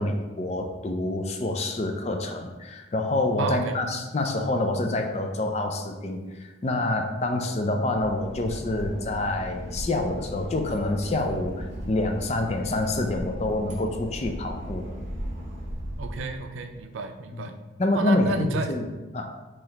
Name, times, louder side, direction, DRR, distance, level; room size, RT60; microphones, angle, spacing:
voice 1, 0.0-14.9 17.3-17.4 17.8-18.8 19.1-19.3, left 2 dB, 35° left, 4 dB, 0.4 m, -27 dB
voice 2, 3.4-3.8 16.0-17.5 17.9-18.8, right 3 dB, 80° right, 7 dB, 0.4 m, -31 dB
Boat Water vehicle / Engine, 7.9-16.8, equal, 35° right, 0.8 m, -37 dB
5.7 x 3.2 x 2.9 m, 1.2 s
head